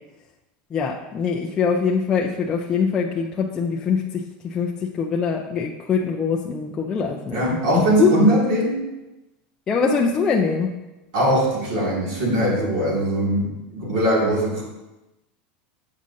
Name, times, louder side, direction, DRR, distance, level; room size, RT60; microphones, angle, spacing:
voice 1, 0.7-8.1 9.7-10.7, left 5 dB, 15° left, -1 dB, 0.3 m, -23 dB
voice 2, 7.3-8.8 11.1-14.6, right 1 dB, 65° right, -4 dB, 2.4 m, -21 dB
7.4 x 6.1 x 2.8 m, 1.0 s
supercardioid pair, 175°, 5 cm